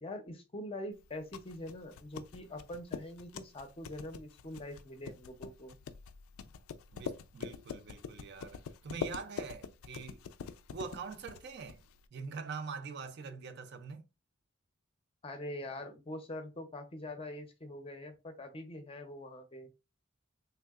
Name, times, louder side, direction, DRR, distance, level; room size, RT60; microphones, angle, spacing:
voice 1, 0.0-5.8 15.2-19.7, left 1 dB, 25° left, 0.5 m, -44 dB
sound 1, 1.0-12.1, left 6 dB, 90° left, 0.3 m, -45 dB
voice 2, 6.9-10.2 10.7-11.8 12.1-14.1, right 5 dB, 55° right, 0.4 m, -44 dB
3.3 x 2.7 x 2.3 m
head